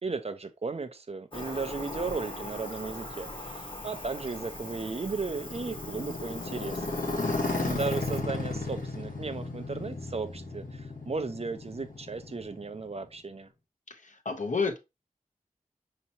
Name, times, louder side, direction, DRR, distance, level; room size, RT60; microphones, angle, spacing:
voice 1, 0.0-7.0 7.6-13.5, right 4 dB, 50° right, 0.5 m, -35 dB
Cricket, 1.3-8.2, left 1 dB, 40° left, 1.0 m, -41 dB
Motorcycle, 3.5-13.1, left 3 dB, 90° left, 1.1 m, -35 dB
voice 2, 7.2-7.7 13.9-14.8, left 4 dB, 70° left, 0.8 m, -32 dB
5.3 x 2.9 x 2.8 m
wide cardioid pair, 70°, 14 cm